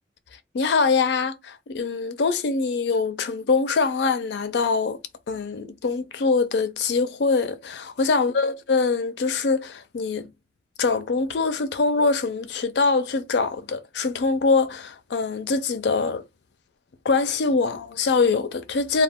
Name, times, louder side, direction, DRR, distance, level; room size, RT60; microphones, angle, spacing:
voice 1, 0.5-5.0 5.3-10.3 10.8-16.2 17.1-19.0, left 4 dB, 70° left, 0.4 m, -23 dB
2.2 x 2.1 x 3.5 m
head